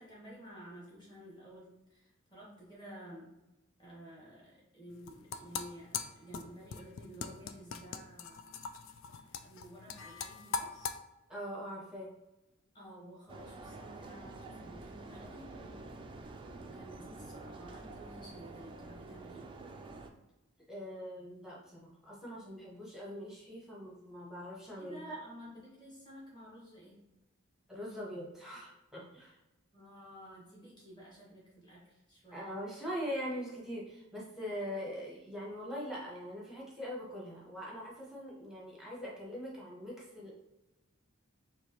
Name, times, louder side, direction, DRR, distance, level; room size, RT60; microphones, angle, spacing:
voice 1, 0.0-3.3 3.8-8.5 9.3-11.0 12.7-15.8 16.5-19.4 24.8-27.0 29.7-32.4, equal, 20° left, -5 dB, 1.4 m, -52 dB
sound 1, 4.9-11.0, left 6 dB, 65° left, 0.3 m, -41 dB
voice 2, 11.3-12.1 20.7-25.0 27.7-29.4 32.3-40.3, equal, ahead, -5 dB, 0.9 m, -42 dB
sound 2, 13.3-20.1, right 2 dB, 25° right, 0.3 m, -48 dB
4.5 x 2.7 x 3.0 m, 0.96 s
head